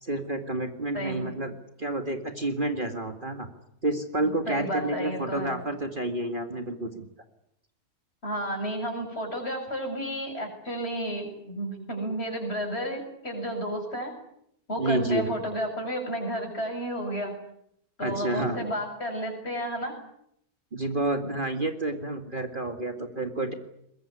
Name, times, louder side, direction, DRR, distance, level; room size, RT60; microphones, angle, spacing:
voice 1, 0.0-3.5 3.8-7.0 14.8-15.3 18.0-18.7 20.7-23.5, right 2 dB, 35° right, 6 dB, 2.2 m, -29 dB
voice 2, 0.9-1.3 4.2-5.6 8.2-14.1 14.7-17.3 18.0-20.0, equal, 40° left, 4 dB, 7.8 m, -32 dB
23.0 x 22.0 x 9.9 m, 0.76 s
omnidirectional pair, 1.6 m